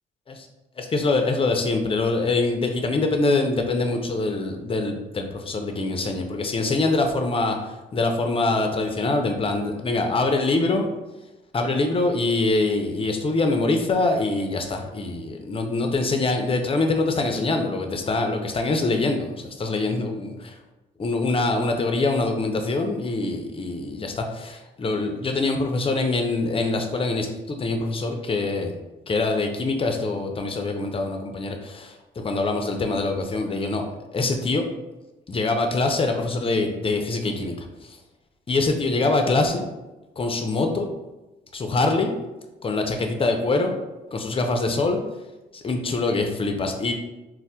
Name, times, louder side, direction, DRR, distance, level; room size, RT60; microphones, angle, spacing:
voice 1, 0.8-10.9 11.5-20.5 21.0-28.8 29.1-33.9 34.1-34.7 35.3-38.0 38.5-39.7 40.2-40.9 41.5-42.1 42.6-43.8 44.1-45.0 45.5-46.9, left 3 dB, 30° left, 4 dB, 0.5 m, -24 dB
4.0 x 2.1 x 2.2 m, 1.1 s
supercardioid pair, 70°, 20 cm